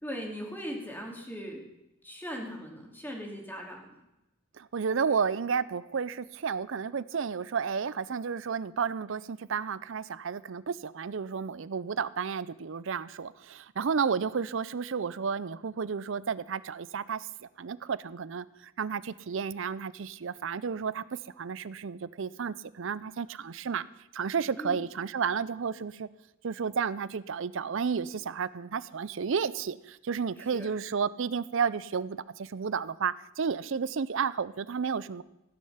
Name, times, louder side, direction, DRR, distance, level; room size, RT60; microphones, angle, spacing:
voice 1, 0.0-1.6 2.0-3.8 24.5-24.9 30.4-30.7, equal, 10° left, 0 dB, 2.4 m, -39 dB
voice 2, 4.6-17.3 17.6-23.8 24.1-26.1 26.4-35.2, right 6 dB, 60° right, 18 dB, 0.5 m, -32 dB
15.5 x 10.0 x 5.7 m, 0.92 s
head